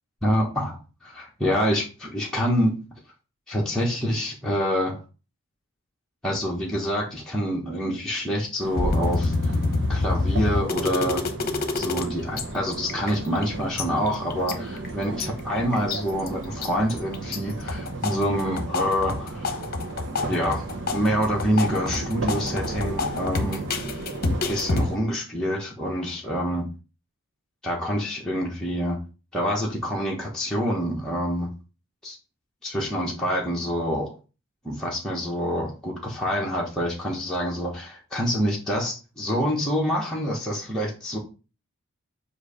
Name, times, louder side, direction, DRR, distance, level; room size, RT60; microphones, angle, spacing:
voice 1, 0.2-2.8 3.5-5.0 6.2-9.5 9.9-11.2 11.7-19.5 20.3-20.7 20.9-23.6 24.5-26.7 27.6-29.0 29.3-31.5 32.0-32.2 32.6-34.1 34.6-41.2, equal, 5° left, -5 dB, 1.2 m, -26 dB
sound 1, 8.6-25.0, right 2 dB, 55° right, 1.0 m, -35 dB
sound 2, 8.8-12.0 12.4-12.5 12.7-13.4 13.8-15.3 15.7-16.3 16.6-17.4 17.7-24.9, left 3 dB, 45° left, 0.9 m, -27 dB
7.6 x 2.8 x 5.0 m, 0.33 s
head